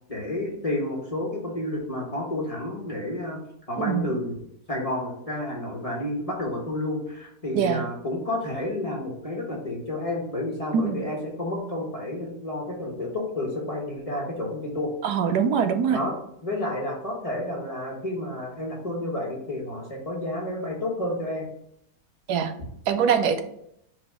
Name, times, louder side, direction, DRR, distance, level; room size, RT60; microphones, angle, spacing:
voice 1, 0.1-3.4 3.7-4.4 4.7-14.9 15.9-16.2 16.4-21.5, left 1 dB, 25° left, -2 dB, 1.3 m, -30 dB
voice 2, 3.8-4.1 7.6-7.9 10.7-11.0 15.0-16.0 22.3-22.5 22.9-23.4, right 7 dB, 80° right, 8 dB, 1.2 m, -23 dB
4.9 x 4.2 x 4.9 m, 0.73 s
omnidirectional pair, 1.7 m